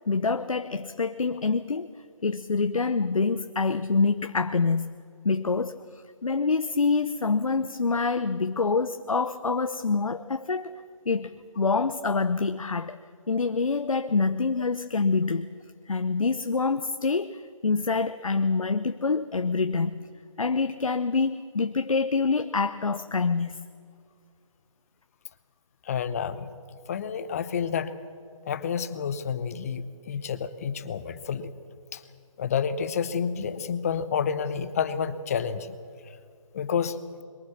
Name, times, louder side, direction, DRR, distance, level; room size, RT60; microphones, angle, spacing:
voice 1, 0.0-1.9 2.2-5.0 5.2-13.0 13.3-15.5 15.9-20.0 20.4-23.6, left 4 dB, 85° left, 10 dB, 0.8 m, -26 dB
voice 2, 25.8-26.5 26.9-27.9 28.5-31.5 31.9-32.0 32.4-35.8 36.1-36.2 36.5-37.0, left 7 dB, 30° left, 13 dB, 0.8 m, -29 dB
22.5 x 19.0 x 7.2 m, 2.3 s
figure-of-eight pair, 155°, 17 cm